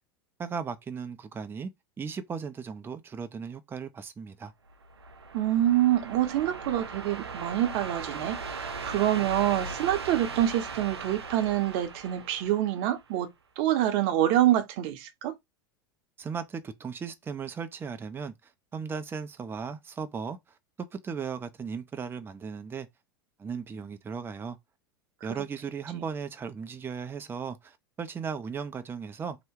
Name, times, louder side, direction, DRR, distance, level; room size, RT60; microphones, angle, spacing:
voice 1, 0.4-1.7 2.0-4.5 16.2-20.4 20.8-22.9 23.4-24.6 25.2-29.4, right 6 dB, 15° right, 0.4 m, -36 dB
sound 1, 4.7-13.2, right 4 dB, 90° right, 0.5 m, -38 dB
voice 2, 5.3-13.3 13.6-15.3, right 12 dB, 55° right, 0.7 m, -26 dB
2.8 x 2.1 x 3.5 m
hypercardioid pair, 85°, 13 cm